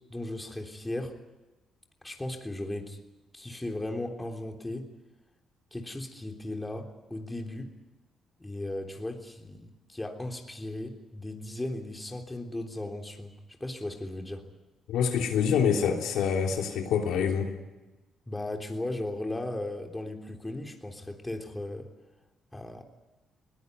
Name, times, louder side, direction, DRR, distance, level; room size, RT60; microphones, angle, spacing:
voice 1, 0.1-1.2 2.0-3.0 3.3-4.9 5.7-7.7 8.4-13.3 13.6-14.5 18.3-21.9 22.5-22.8, left 1 dB, 10° left, 3 dB, 3.4 m, -36 dB
voice 2, 14.9-17.5, left 7 dB, 85° left, 2 dB, 3.2 m, -26 dB
21.0 x 18.0 x 9.6 m, 1.1 s
cardioid pair, 90°, 0 cm